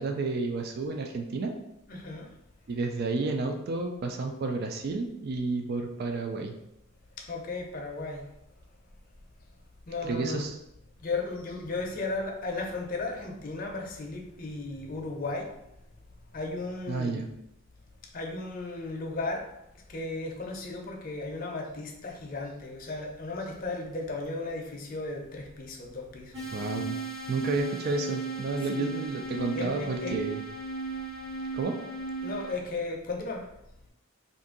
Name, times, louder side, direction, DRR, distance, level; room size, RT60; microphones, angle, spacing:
voice 1, 0.0-1.5 2.7-6.5 10.0-10.6 16.9-17.3 26.5-27.0 27.3-30.4 31.5-31.8, right 3 dB, 50° right, 4 dB, 0.3 m, -31 dB
voice 2, 1.9-2.3 7.2-8.3 9.9-10.5 11.0-15.5 16.3-17.3 18.1-19.5 19.9-26.5 28.7-29.1 29.5-30.2 32.2-33.5, left 3 dB, 40° left, 1 dB, 0.5 m, -35 dB
sound 1, 26.3-32.5, right 3 dB, 65° right, 1.0 m, -36 dB
2.6 x 2.5 x 3.7 m, 0.84 s
head